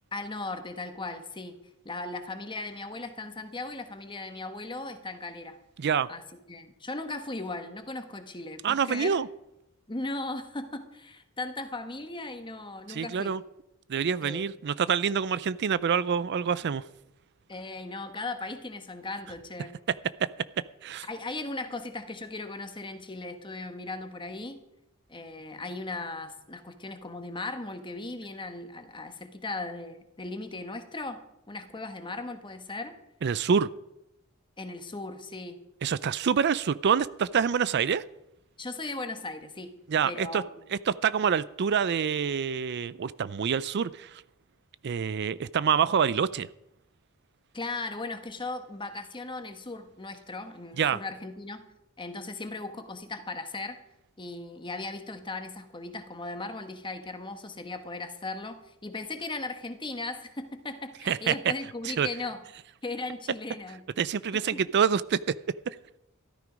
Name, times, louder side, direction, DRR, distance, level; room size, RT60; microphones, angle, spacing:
voice 1, 0.1-1.6 1.8-5.6 6.1-9.2 9.9-13.3 14.2-14.4 17.5-19.7 21.1-24.6 25.1-31.2 31.5-32.9 34.6-35.6 38.6-39.7 40.0-40.4 47.5-51.6 52.0-53.8 54.2-62.4 62.8-63.8 64.3-64.6, left 2 dB, 25° left, 1.3 m, -37 dB
voice 2, 5.8-6.1 8.6-9.3 12.9-13.4 13.9-16.8 20.2-20.3 20.8-21.1 33.2-33.7 35.8-38.0 39.9-40.4 40.7-44.2 44.8-46.5 50.8-51.0 61.1-61.3 61.8-62.1 64.0-65.3 65.7-65.8, right 7 dB, 55° right, 0.4 m, -26 dB
14.0 x 13.0 x 5.2 m
head